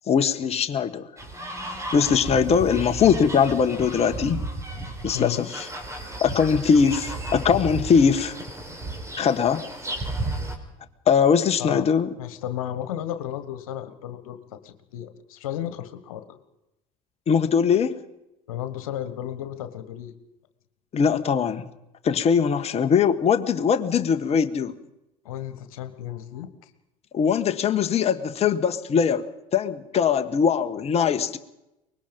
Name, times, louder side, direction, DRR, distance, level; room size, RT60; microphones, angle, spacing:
voice 1, 0.1-1.1 1.9-4.4 5.0-5.7 6.2-8.3 9.2-9.6 11.1-12.1 17.3-18.0 20.9-21.6 22.0-24.7 27.1-29.3 29.5-31.4, left 6 dB, 35° left, 7 dB, 1.4 m, -21 dB
sound 1, 1.2-10.6, right 2 dB, 15° right, 4.6 m, -33 dB
voice 2, 12.2-16.4 18.5-20.1 25.2-26.7, left 11 dB, 80° left, 10 dB, 1.6 m, -33 dB
24.0 x 20.5 x 5.4 m, 0.90 s
hypercardioid pair, 75°, 18 cm